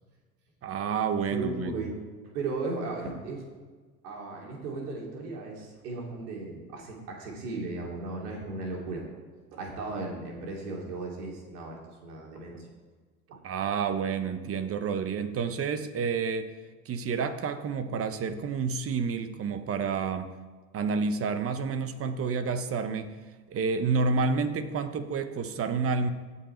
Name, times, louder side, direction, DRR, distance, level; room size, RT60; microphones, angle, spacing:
voice 1, 0.6-1.8 13.4-16.5 16.8-20.3 20.7-23.1 23.5-26.1, right 5 dB, 30° right, 10 dB, 1.0 m, -29 dB
voice 2, 1.3-1.9 2.3-3.4 4.0-9.0 9.5-12.7 13.3-13.4, right 3 dB, 80° right, -1 dB, 2.7 m, -36 dB
16.5 x 5.6 x 4.5 m, 1.4 s
supercardioid pair, 105°, 45 cm